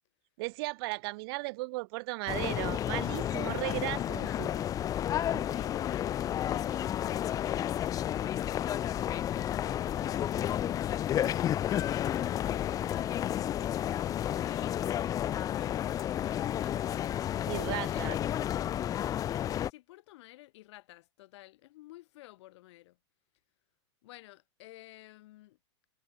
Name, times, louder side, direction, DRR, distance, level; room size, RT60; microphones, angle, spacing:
voice 1, 0.4-4.5 5.3-5.6 17.5-18.2, right 25 dB, 55° right, 0.5 m, -36 dB
sound 1, 2.3-19.7, left 11 dB, 25° left, 0.6 m, -31 dB
voice 2, 4.2-4.7 5.3-14.9 15.4-17.0 17.3-18.7 19.5-23.0 24.0-25.6, left 17 dB, 70° left, 2.4 m, -52 dB
supercardioid pair, 150°, 15 cm